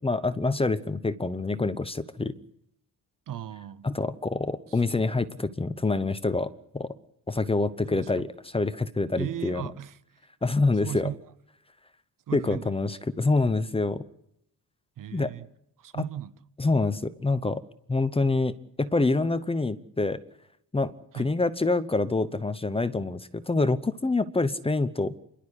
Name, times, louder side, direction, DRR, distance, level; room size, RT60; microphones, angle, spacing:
voice 1, 0.0-2.3 3.8-6.5 6.7-6.9 7.3-9.6 10.4-11.1 12.3-14.0 15.1-15.3 15.9-16.0 16.6-17.6 17.9-18.5 18.8-20.2 20.7-25.2, left 3 dB, 15° left, 0.8 m, -26 dB
voice 2, 3.3-3.9 4.7-4.8 7.9-8.3 9.2-10.0 10.8-11.1 12.3-12.8 15.0-15.5 15.8-16.3 21.1-21.4, right 11 dB, 55° right, 0.9 m, -36 dB
26.5 x 12.0 x 10.0 m
cardioid pair, 130°, 39 cm